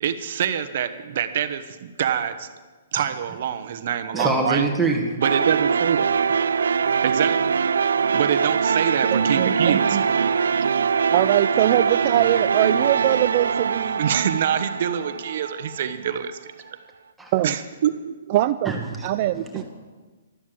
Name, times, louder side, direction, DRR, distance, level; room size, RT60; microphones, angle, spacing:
voice 1, 0.0-2.5 2.9-4.6 5.2-6.1 7.0-7.5 8.1-10.0 14.0-16.4 17.4-18.3, right 9 dB, 50° right, 10 dB, 1.0 m, -25 dB
voice 2, 4.1-5.2 17.2-17.3 18.7-19.1 19.3-19.6, right 3 dB, 5° right, 0 dB, 1.8 m, -25 dB
sound 1, 5.2-16.1, right 6 dB, 90° right, 0.5 m, -22 dB
voice 3, 9.1-10.0 11.1-14.0 17.3-17.6 18.3-18.7 19.0-19.6, right 14 dB, 35° right, 12 dB, 0.4 m, -22 dB
13.0 x 12.5 x 7.6 m, 1.3 s
hypercardioid pair, 160°, 0 cm